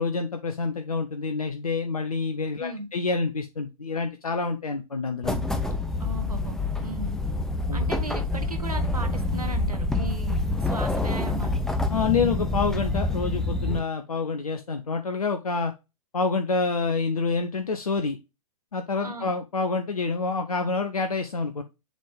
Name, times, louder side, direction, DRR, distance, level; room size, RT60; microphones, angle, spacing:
voice 1, 0.0-5.5 7.7-7.8 11.9-15.7 16.1-18.2 18.7-21.6, left 4 dB, 75° left, 0.8 m, -27 dB
sound 1, 5.2-13.8, left 2 dB, ahead, 0.6 m, -27 dB
voice 2, 6.0-7.2 7.7-11.6 19.0-19.3, right 2 dB, 85° right, 1.4 m, -37 dB
7.6 x 3.5 x 3.6 m
figure-of-eight pair, 110°, 19 cm